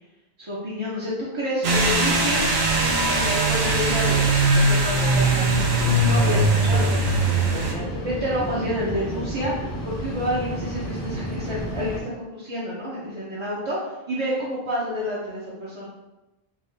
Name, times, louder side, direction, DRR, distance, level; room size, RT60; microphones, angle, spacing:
voice 1, 0.4-2.5 2.8-15.8, equal, 35° right, -8 dB, 0.6 m, -29 dB
sound 1, 1.6-7.7, right 2 dB, 80° right, 0.9 m, -20 dB
sound 2, 5.1-12.0, equal, 25° left, 0.4 m, -31 dB
3.6 x 2.5 x 3.3 m, 1.0 s
omnidirectional pair, 1.1 m